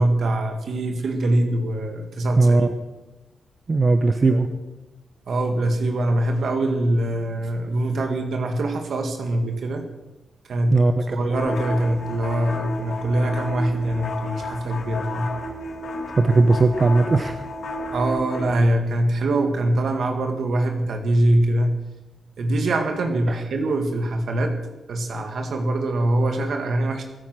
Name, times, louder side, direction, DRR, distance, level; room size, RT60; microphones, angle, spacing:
voice 1, 0.0-2.7 4.3-4.4 5.3-9.8 10.5-10.8 11.1-15.3 17.9-21.7 22.4-24.6 24.9-27.0, right 1 dB, 70° right, 4 dB, 2.0 m, -23 dB
voice 2, 2.4-2.7 3.7-4.5 10.7-11.2 16.2-17.4, right 3 dB, 40° right, 8 dB, 1.0 m, -18 dB
sound 1, 11.3-18.5, left 2 dB, 75° left, 3.7 m, -32 dB
24.0 x 9.2 x 6.3 m, 1.1 s
cardioid pair, 85°, 0 cm